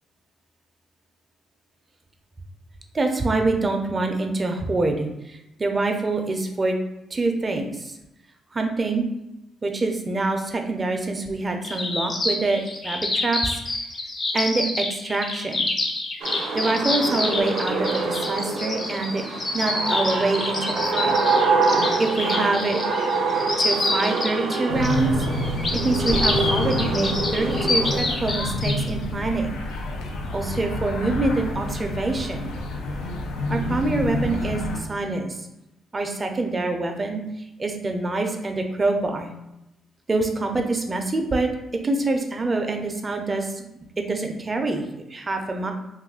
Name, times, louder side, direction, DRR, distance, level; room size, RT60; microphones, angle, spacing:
voice 1, 2.9-6.8 7.1-7.9 8.5-9.1 9.6-13.5 14.3-15.7 16.5-21.2 22.0-22.8 23.6-29.6 30.3-32.5 33.5-35.5 35.9-37.2 37.6-39.3 40.1-41.5 41.8-43.7 44.1-45.7, right 3 dB, 25° right, 4 dB, 0.5 m, -25 dB
sound 1, 11.6-28.9, left 2 dB, 35° left, 0.6 m, -27 dB
sound 2, 16.2-28.0, right 3 dB, 80° right, 0.5 m, -26 dB
sound 3, 24.7-34.8, left 2 dB, 90° left, 0.4 m, -28 dB
2.6 x 2.4 x 3.6 m, 0.89 s
cardioid pair, 90°, 0 cm